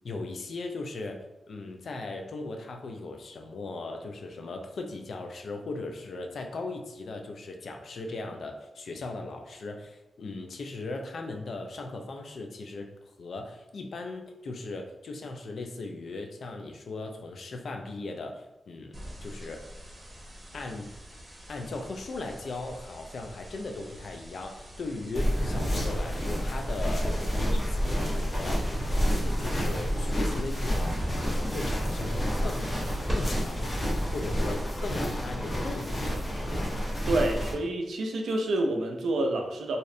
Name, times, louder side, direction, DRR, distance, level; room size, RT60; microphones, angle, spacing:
voice 1, 0.0-12.9 13.2-19.6 20.5-20.9 21.5-27.1 27.3-28.7 28.9-32.9 33.1-33.8 34.1-36.0, left 3 dB, 70° left, 4 dB, 0.3 m, -38 dB
sound 1, 18.9-34.9, equal, 25° right, 0.8 m, -42 dB
sound 2, 25.1-37.5, equal, 40° left, 0.7 m, -29 dB
voice 2, 37.1-39.8, right 2 dB, 85° right, 2 dB, 0.3 m, -28 dB
2.6 x 2.0 x 2.5 m, 0.96 s
cardioid pair, 60°, 0 cm